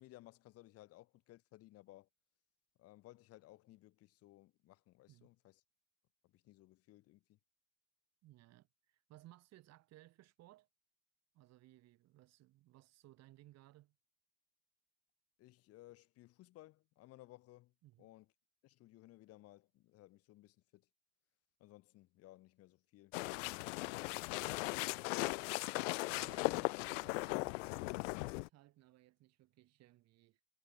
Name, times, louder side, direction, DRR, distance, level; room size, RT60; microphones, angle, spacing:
voice 1, 0.0-2.1 2.8-5.6 6.2-7.4 15.4-17.7 18.0-18.3 18.6-20.9 21.6-24.3, left 17 dB, 30° left, 1.8 m, -60 dB
voice 2, 8.2-10.7 11.3-13.9 17.8-18.1 23.8-24.0 25.7-30.4, right 16 dB, 30° right, 4.0 m, -63 dB
sound 1, 23.1-28.5, left 27 dB, 50° left, 0.8 m, -38 dB
supercardioid pair, 170°, 48 cm